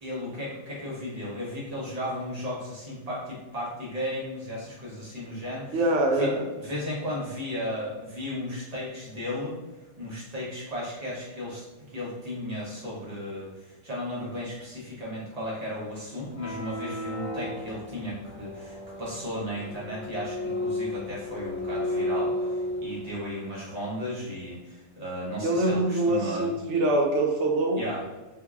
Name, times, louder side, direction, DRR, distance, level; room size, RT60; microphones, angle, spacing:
voice 1, 0.0-5.8 6.2-6.3 6.6-9.6 10.0-11.6 11.9-26.5 27.8-28.0, left 1 dB, 35° right, -6 dB, 1.0 m, -35 dB
voice 2, 5.7-6.4 25.4-27.8, right 2 dB, 90° right, 1 dB, 0.9 m, -24 dB
sound 1, 16.2-23.2, left 1 dB, 70° left, 0.3 m, -33 dB
3.6 x 2.7 x 2.3 m, 1.1 s
omnidirectional pair, 1.2 m